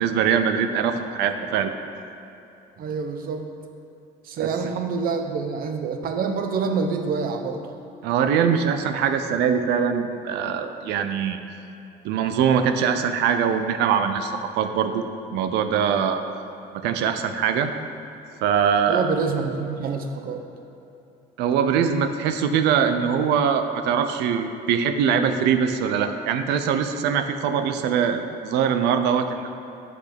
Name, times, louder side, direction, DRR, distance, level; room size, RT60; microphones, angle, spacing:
voice 1, 0.0-1.7 4.4-4.5 8.0-11.4 12.0-15.0 15.3-16.2 16.7-17.7 18.4-19.1 21.4-29.5, right 7 dB, 85° right, 8 dB, 0.6 m, -22 dB
voice 2, 2.8-3.5 4.2-7.6 18.9-20.4, right 5 dB, 60° right, 5 dB, 0.9 m, -26 dB
8.0 x 5.9 x 6.0 m, 2.9 s
cardioid pair, 110°, 17 cm